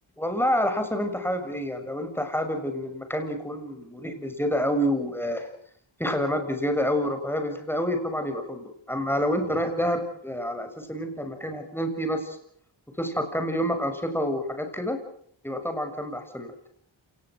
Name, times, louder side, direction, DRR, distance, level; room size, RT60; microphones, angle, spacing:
voice 1, 0.2-5.5 6.0-12.4 13.0-15.0 15.4-16.5, equal, 5° left, 6 dB, 6.9 m, -28 dB
27.5 x 20.0 x 6.3 m, 0.65 s
cardioid pair, 40°, 48 cm